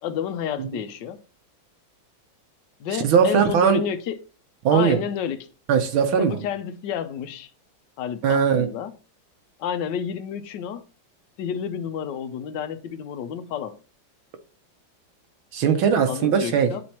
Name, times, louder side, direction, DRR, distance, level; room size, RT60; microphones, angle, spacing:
voice 1, 0.0-1.2 2.8-4.2 4.7-5.5 6.2-7.5 8.0-8.9 9.6-10.9 11.4-13.8 16.1-16.8, left 8 dB, 70° left, 1.3 m, -30 dB
voice 2, 3.0-3.8 4.6-5.0 5.7-6.4 8.2-8.7 15.5-16.7, right 7 dB, 90° right, 1.8 m, -19 dB
10.5 x 4.4 x 2.9 m
omnidirectional pair, 2.1 m